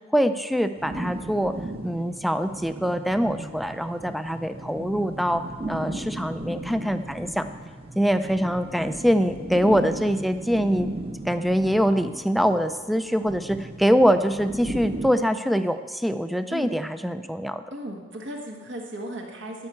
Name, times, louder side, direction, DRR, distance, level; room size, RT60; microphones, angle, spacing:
voice 1, 0.1-1.5 1.8-7.5 8.0-10.9 11.3-17.6, equal, ahead, 9 dB, 0.4 m, -24 dB
sound 1, 0.8-15.1, right 2 dB, 30° right, 0.9 m, -36 dB
voice 2, 17.7-19.7, right 1 dB, 65° right, 0 dB, 1.6 m, -35 dB
12.5 x 5.7 x 8.5 m, 1.4 s
head